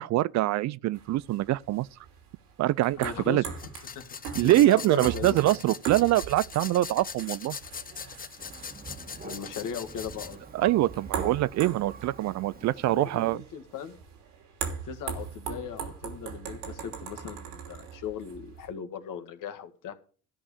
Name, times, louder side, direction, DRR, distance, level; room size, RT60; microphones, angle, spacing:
voice 1, 0.0-1.9 2.6-3.4 4.3-7.6 10.5-13.4, right 16 dB, 50° right, 0.4 m, -24 dB
sound 1, 0.9-18.7, right 7 dB, 85° right, 3.0 m, -41 dB
voice 2, 3.0-3.5 3.9-4.2 4.4-5.5 9.2-10.4 12.6-14.0 14.8-19.9, left 7 dB, 60° left, 1.9 m, -38 dB
sound 2, 3.6-10.3, left 6 dB, 25° left, 0.7 m, -41 dB
Thunder, 8.4-13.4, right 4 dB, 25° right, 1.7 m, -45 dB
13.0 x 5.2 x 8.3 m
hypercardioid pair, 70°, 37 cm